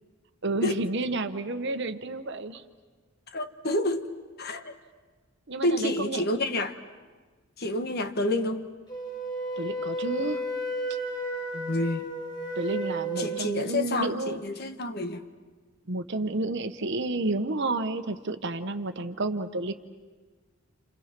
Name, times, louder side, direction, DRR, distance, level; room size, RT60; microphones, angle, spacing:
voice 1, 0.4-2.6 5.5-6.2 9.6-10.4 12.6-14.4 15.9-19.7, right 2 dB, 55° right, 1.1 m, -30 dB
voice 2, 3.3-4.1 4.4-4.7 5.6-6.8 7.6-8.7 11.5-12.1 13.2-15.3, left 1 dB, 50° left, 1.3 m, -29 dB
Wind instrument woodwind instrument, 8.9-13.6, right 1 dB, 20° left, 2.9 m, -33 dB
29.0 x 28.5 x 6.0 m
head